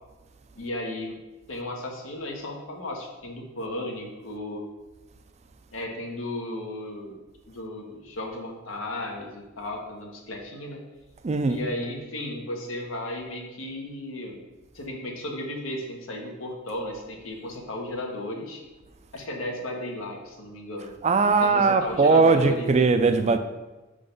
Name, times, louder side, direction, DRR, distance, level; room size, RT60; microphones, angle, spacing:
voice 1, 0.6-1.2 1.5-4.7 5.7-7.2 7.5-10.8 11.5-14.4 14.7-18.6 19.1-20.9 21.4-22.9, left 1 dB, 90° left, 1 dB, 1.1 m, -34 dB
voice 2, 11.2-11.6 21.0-23.4, right 4 dB, 35° right, 9 dB, 0.4 m, -20 dB
5.7 x 3.8 x 5.2 m, 1.1 s
head